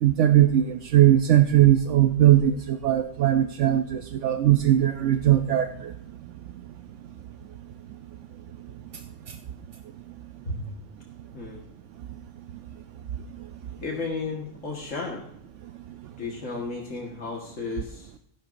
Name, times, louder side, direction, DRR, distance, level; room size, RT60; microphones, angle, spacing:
voice 1, 0.0-5.9, right 12 dB, 75° right, 8 dB, 0.9 m, -19 dB
voice 2, 13.8-15.3 16.2-18.1, left 3 dB, 80° left, -1 dB, 1.9 m, -33 dB
15.0 x 11.5 x 2.6 m, 0.73 s
omnidirectional pair, 1.3 m